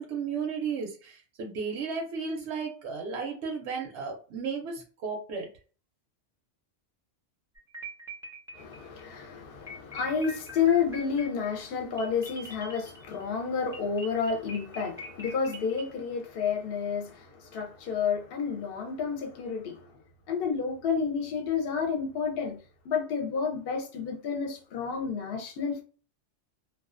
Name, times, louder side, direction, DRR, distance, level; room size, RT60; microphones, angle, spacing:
voice 1, 0.0-5.5, right 5 dB, 70° right, 0.8 m, -34 dB
sound 1, 7.5-9.0 9.7-13.2 13.7-15.9, equal, 5° right, 0.3 m, -43 dB
voice 2, 8.5-19.8 20.3-22.6 22.8-25.8, left 6 dB, 60° left, 0.7 m, -30 dB
2.3 x 2.3 x 2.4 m
omnidirectional pair, 1.3 m